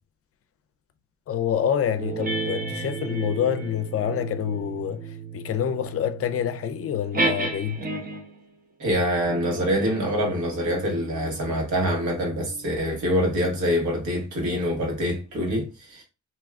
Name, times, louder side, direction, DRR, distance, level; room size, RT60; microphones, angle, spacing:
voice 1, 1.3-7.8, left 9 dB, 50° left, 0.5 m, -27 dB
sound 1, 2.0-8.4 9.1-14.1, right 3 dB, 30° right, 0.8 m, -33 dB
voice 2, 8.8-16.0, equal, 80° right, 1.5 m, -25 dB
2.8 x 2.3 x 3.4 m
cardioid pair, 90°, 30 cm